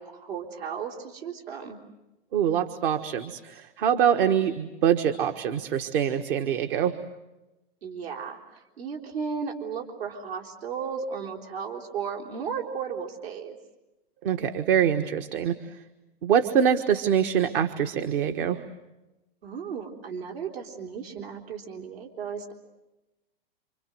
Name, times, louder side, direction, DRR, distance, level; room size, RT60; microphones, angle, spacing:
voice 1, 0.0-1.8 7.8-13.6 19.4-22.5, right 6 dB, 75° right, 1 dB, 3.8 m, -35 dB
voice 2, 2.3-7.0 14.2-15.6 16.2-18.6, right 8 dB, 60° right, 7 dB, 1.6 m, -24 dB
28.0 x 27.0 x 7.9 m, 0.99 s
hypercardioid pair, 125°, 31 cm